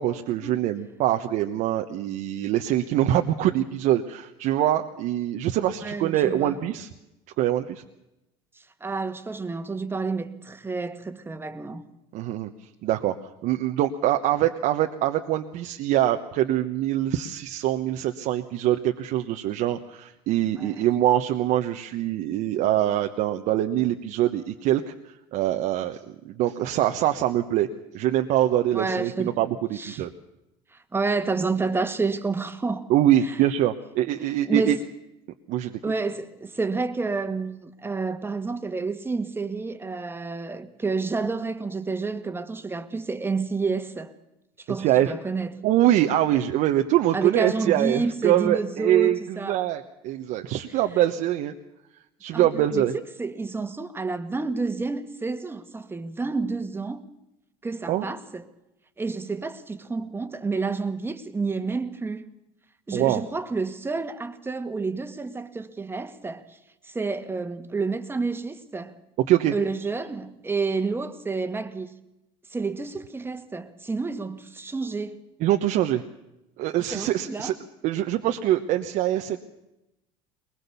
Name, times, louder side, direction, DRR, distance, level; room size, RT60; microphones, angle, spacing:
voice 1, 0.0-6.9 7.4-7.8 12.1-12.5 12.8-13.1 13.4-26.0 26.2-27.7 27.9-30.1 32.9-34.8 35.5-35.7 44.8-45.1 45.6-51.5 52.2-52.9 57.9-58.1 62.9-63.2 69.3-69.5 75.4-76.0 76.6-77.5 77.8-79.4, right 12 dB, 65° right, 1.1 m, -24 dB
voice 2, 5.8-6.6 8.6-11.8 20.5-20.8 28.7-29.3 29.7-30.0 30.7-32.9 33.2-33.4 34.4-34.8 35.8-44.1 44.6-45.5 47.1-49.7 52.3-57.0 57.6-58.4 59.0-62.3 62.9-66.6 66.8-68.9 69.5-71.9 72.5-75.2 76.9-77.6, right 4 dB, 15° right, 1.7 m, -29 dB
22.0 x 20.5 x 7.0 m
supercardioid pair, 105°, 14 cm